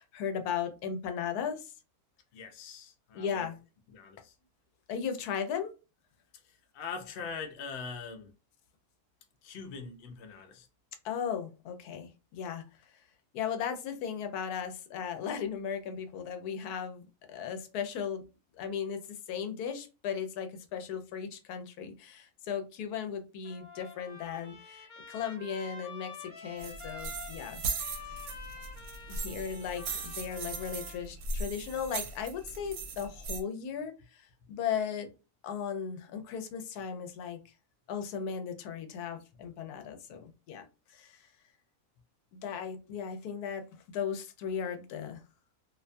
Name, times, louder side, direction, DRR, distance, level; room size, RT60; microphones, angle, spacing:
voice 1, 0.0-1.7 3.1-3.6 4.9-5.7 11.0-12.7 13.3-18.2 18.5-27.6 28.1-28.2 29.1-35.1 35.4-37.4 37.9-41.3 42.3-45.2, left 7 dB, 90° left, 1.1 m, -37 dB
voice 2, 2.3-3.5 3.9-4.3 6.5-8.3 9.4-10.7, left 5 dB, 60° left, 0.7 m, -42 dB
Trumpet, 23.4-31.0, left 4 dB, 40° left, 0.9 m, -48 dB
sound 1, 26.6-33.4, right 3 dB, 75° right, 1.0 m, -38 dB
2.7 x 2.2 x 2.5 m
omnidirectional pair, 1.6 m